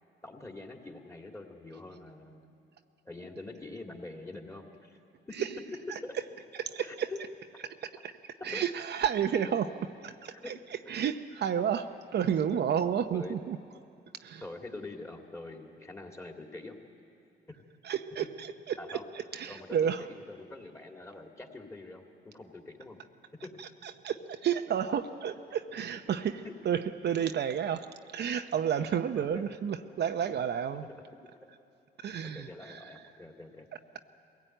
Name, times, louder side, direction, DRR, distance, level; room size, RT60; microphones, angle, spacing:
voice 1, 0.2-2.5 3.0-5.0 5.3-5.4 6.0-6.1 6.8-7.2 8.5-8.6 10.3-10.5 13.1-13.4 14.4-16.8 18.8-19.0 19.5-23.0 23.4-23.6 26.4-26.5 29.2-29.5 32.3-33.7, left 2 dB, 15° left, 2 dB, 2.6 m, -44 dB
voice 2, 6.6-7.1 8.0-8.1 8.4-10.6 10.9-13.6 14.2-14.4 17.8-20.1 23.6-30.9 32.0-32.9, right 8 dB, 60° right, 7 dB, 0.7 m, -31 dB
22.5 x 16.5 x 9.1 m, 2.6 s
cardioid pair, 90°, 20 cm